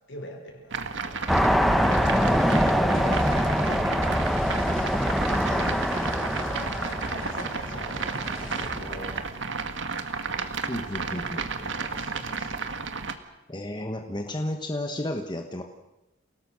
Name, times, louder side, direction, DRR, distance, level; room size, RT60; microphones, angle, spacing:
voice 1, 0.0-1.5 6.7-8.0 8.4-9.7 11.0-12.6, equal, 65° left, 3 dB, 5.6 m, -45 dB
sound 1, 0.7-13.2, right 4 dB, 70° right, 1.8 m, -33 dB
sound 2, 1.3-9.2, equal, ahead, 1.1 m, -25 dB
sound 3, 1.6-11.3, left 3 dB, 85° left, 3.6 m, -47 dB
voice 2, 2.2-3.2 5.5-5.8 10.7-11.4 13.5-15.6, left 1 dB, 25° left, 4 dB, 1.4 m, -33 dB
29.0 x 18.5 x 6.4 m, 1.0 s
head